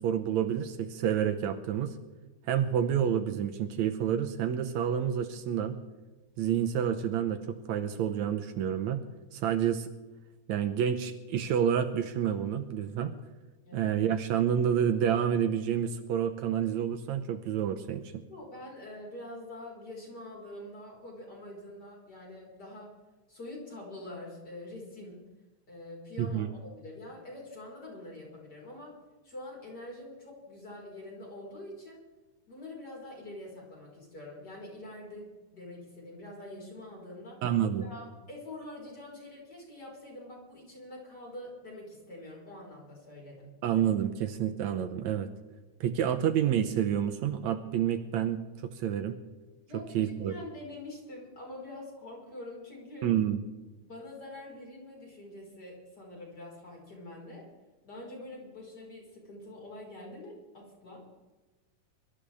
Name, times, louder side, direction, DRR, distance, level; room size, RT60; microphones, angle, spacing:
voice 1, 0.0-1.9 2.5-5.8 6.4-9.1 9.3-9.9 10.5-13.1 13.7-18.2 26.2-26.5 37.4-37.9 43.6-45.3 45.8-49.2 49.7-50.3 53.0-53.4, right 9 dB, 75° right, 8 dB, 1.9 m, -29 dB
voice 2, 18.3-23.0 23.3-25.2 25.7-29.0 29.2-32.0 32.5-37.4 37.8-43.5 49.7-53.1 53.8-57.4 57.8-61.0, left 1 dB, 30° left, -2 dB, 5.1 m, -45 dB
23.5 x 13.0 x 3.5 m, 1.2 s
omnidirectional pair, 3.7 m